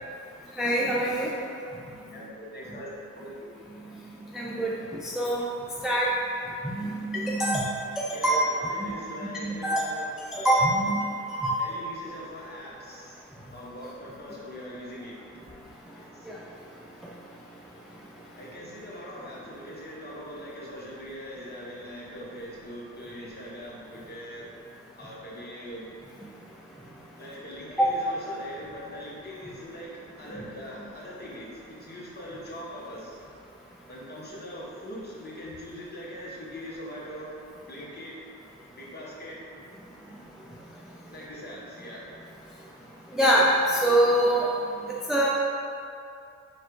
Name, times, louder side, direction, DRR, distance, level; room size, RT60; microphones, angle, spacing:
voice 1, 0.5-1.3 1.9-2.2 2.7-2.8 3.7-5.5 5.8-6.1 6.6-8.4 8.8-8.9 9.4-9.8 10.3-11.5 16.2-16.4 17.0-17.1 26.2-26.3 27.8-28.0 30.3-30.4 43.1-44.5 44.8-45.3, right 1 dB, ahead, -5 dB, 0.4 m, -25 dB
voice 2, 2.1-2.9 3.1-3.5 8.1-10.1 11.6-13.2 13.5-15.2 15.9-16.3 18.4-24.5 25.0-25.8 27.2-33.2 33.9-37.3 37.7-38.1 38.8-39.4 41.1-42.1, equal, 35° left, -6 dB, 1.2 m, -41 dB
4.4 x 2.4 x 4.6 m, 2.6 s
cardioid pair, 90°, 30 cm